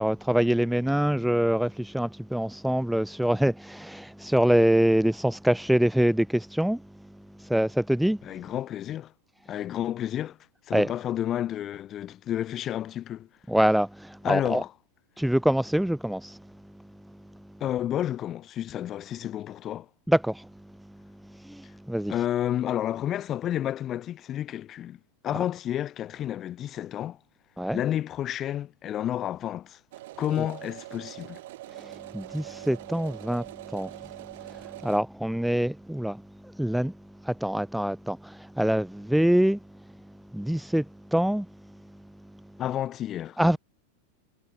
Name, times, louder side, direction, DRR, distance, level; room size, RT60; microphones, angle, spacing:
voice 1, 0.0-6.8 7.4-8.2 10.7-10.9 13.5-14.6 15.2-16.4 20.1-20.5 21.3-22.1 27.6-27.8 30.4-30.5 31.7-34.0 34.4-36.9 37.2-39.6 40.3-41.5 43.4-43.6, equal, ahead, 0.8 m, -25 dB
voice 2, 8.2-9.1 9.5-10.4 10.7-13.3 14.2-14.7 17.6-19.9 22.1-25.0 25.2-27.2 27.7-29.8 30.2-31.4 42.6-43.4, left 11 dB, 30° left, 3.5 m, -30 dB
sound 1, 29.9-35.0, right 17 dB, 55° right, 6.9 m, -43 dB
figure-of-eight pair, 90°, 0 cm